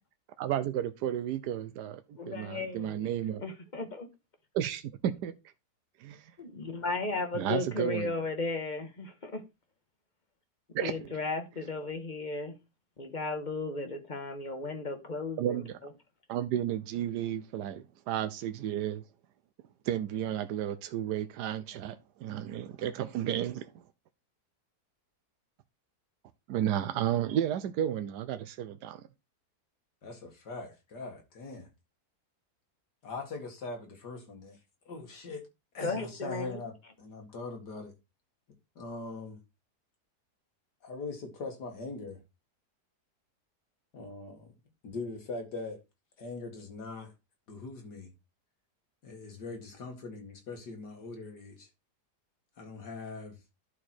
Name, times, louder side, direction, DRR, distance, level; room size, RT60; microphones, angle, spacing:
voice 1, 0.4-3.4 4.5-5.3 6.0-6.2 7.3-8.2 10.7-11.1 15.4-15.8 16.3-19.0 19.8-23.7 26.5-29.0, right 11 dB, 85° right, 1.3 m, -32 dB
voice 2, 2.2-3.1 3.4-4.1 6.4-9.4 10.8-12.5 13.0-15.6 35.8-36.6, left 3 dB, 30° left, 1.5 m, -35 dB
voice 3, 30.0-31.7 33.0-34.6 34.9-35.5 35.7-37.9 38.8-39.4 40.8-42.2 43.9-44.5 44.8-45.8 46.2-47.1 47.5-48.1 49.0-51.7 52.6-53.4, left 3 dB, 85° left, 2.6 m, -41 dB
11.0 x 4.5 x 4.4 m
omnidirectional pair, 1.7 m